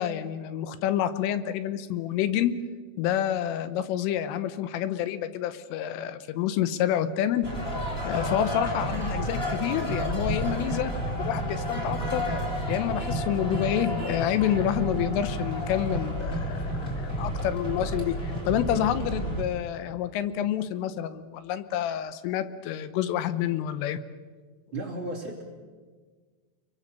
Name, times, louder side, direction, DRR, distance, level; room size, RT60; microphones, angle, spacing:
voice 1, 0.0-2.5 3.0-7.5 8.0-12.2 12.7-24.0, left 11 dB, 85° left, 12 dB, 3.6 m, -28 dB
sound 1, 7.4-19.4, equal, 15° left, 2.8 m, -30 dB
voice 2, 24.7-25.4, right 2 dB, 30° right, -1 dB, 3.4 m, -34 dB
29.0 x 22.5 x 6.8 m, 1.5 s
omnidirectional pair, 5.7 m